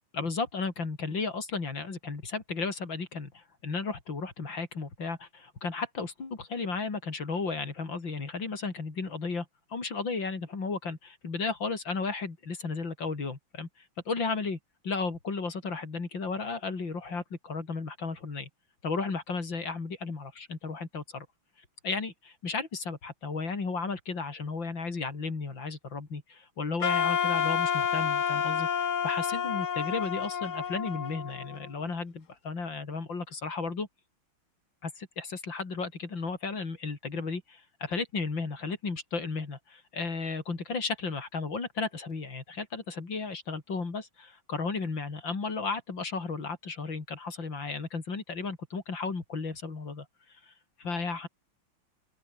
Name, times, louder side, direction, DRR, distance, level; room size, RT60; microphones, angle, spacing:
voice 1, 0.1-13.7 14.1-14.6 14.8-18.5 18.8-21.3 21.8-33.9 34.8-50.1 50.5-50.6 50.8-51.3, left 4 dB, 60° left, 4.4 m, -34 dB
Wind instrument woodwind instrument, 26.8-31.9, left 7 dB, 45° left, 1.2 m, -29 dB
open air
omnidirectional pair, 2.3 m